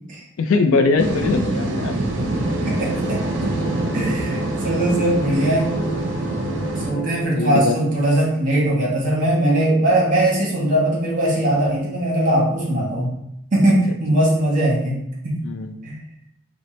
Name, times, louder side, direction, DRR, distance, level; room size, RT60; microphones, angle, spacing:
voice 1, 0.4-2.0 7.0-7.7 13.7-13.8 15.4-15.7, left 3 dB, 80° left, 7 dB, 0.4 m, -21 dB
sound 1, 0.7-7.2, right 2 dB, 5° left, 1.1 m, -32 dB
sound 2, 1.0-6.9, right 1 dB, 55° right, 0.6 m, -25 dB
voice 2, 2.6-3.2 3.9-5.8 6.8-13.2 13.5-15.4 15.8-16.0, right 1 dB, 40° right, -3 dB, 0.9 m, -20 dB
4.0 x 2.1 x 3.1 m, 0.78 s
head